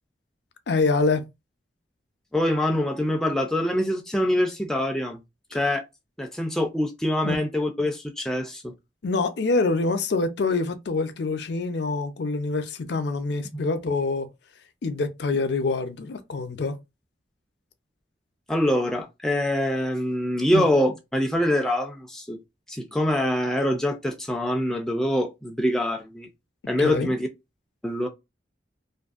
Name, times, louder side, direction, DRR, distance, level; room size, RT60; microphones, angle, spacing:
voice 1, 0.7-1.2 7.2-7.4 9.0-14.3 14.8-16.8 20.5-20.7 26.8-27.1, left 3 dB, 60° left, 0.5 m, -25 dB
voice 2, 2.3-5.2 5.5-5.8 6.2-8.7 13.5-13.6 18.5-22.4 22.7-26.3 26.7-27.3 27.8-28.1, left 1 dB, 5° left, 0.3 m, -24 dB
2.6 x 2.5 x 2.3 m
head